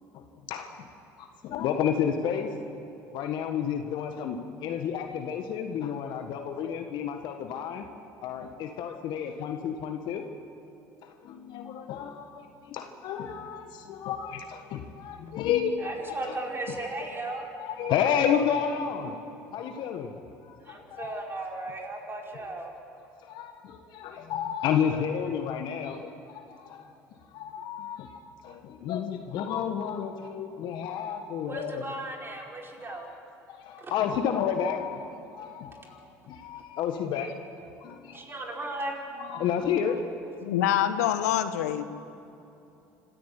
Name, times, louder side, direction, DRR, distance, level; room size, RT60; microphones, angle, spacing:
voice 1, 0.1-0.9 1.2-2.5 3.1-7.9 8.2-10.3 11.0-16.4 16.7-19.2 19.5-21.2 23.2-26.9 27.3-31.9 32.8-33.2 33.5-35.1 35.3-37.4 37.8-38.4 39.1-40.0, left 8 dB, 60° left, 6 dB, 1.5 m, -31 dB
voice 2, 15.8-17.4 20.6-22.7 31.4-33.1 33.8-33.9 38.1-38.9, right 2 dB, 25° right, 0 dB, 5.0 m, -36 dB
voice 3, 40.4-41.8, left 11 dB, 80° left, 11 dB, 1.1 m, -25 dB
26.0 x 14.5 x 8.4 m, 2.8 s
hypercardioid pair, 70°, 9 cm